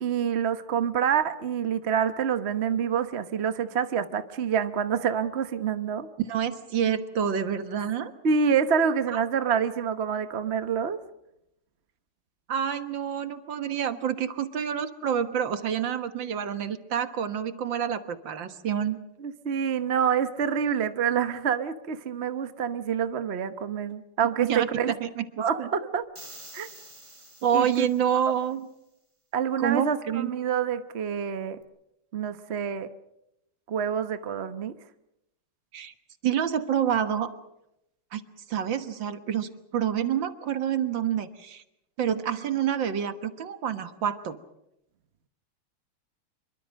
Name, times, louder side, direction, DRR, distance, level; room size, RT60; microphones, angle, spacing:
voice 1, 0.0-6.1 8.2-11.0 19.2-24.9 25.4-26.0 26.5-26.7 27.5-27.9 28.1-28.2 29.3-31.6 32.1-32.9 33.7-34.7, right 7 dB, 40° right, 10 dB, 1.1 m, -27 dB
voice 2, 6.3-8.1 9.1-9.2 12.5-19.0 24.4-25.2 25.6-25.7 27.4-28.6 29.6-30.3 35.7-35.9 36.2-37.3 38.1-38.2 38.5-41.6 42.0-44.4, right 8 dB, 60° right, 10 dB, 2.0 m, -28 dB
sound 1, 26.1-28.4, right 1 dB, 15° right, 4.1 m, -48 dB
26.5 x 23.5 x 6.4 m, 0.83 s
omnidirectional pair, 2.4 m